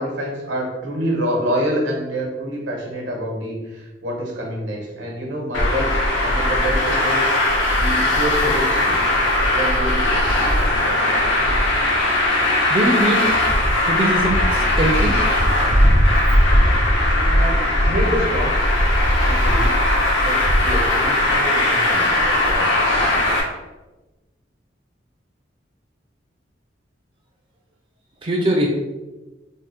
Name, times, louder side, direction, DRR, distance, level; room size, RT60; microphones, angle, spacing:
voice 1, 0.0-7.3 7.7-9.0 9.5-10.5 17.2-18.5 19.2-19.8 20.2-22.9, equal, 85° right, 0 dB, 1.0 m, -27 dB
Traffic noise roadway noise, 5.5-23.4, left 1 dB, 85° left, 0.8 m, -18 dB
voice 2, 12.7-13.3 13.8-15.2 28.2-28.7, right 1 dB, 30° right, -1 dB, 0.4 m, -21 dB
3.6 x 2.0 x 4.1 m, 1.1 s
head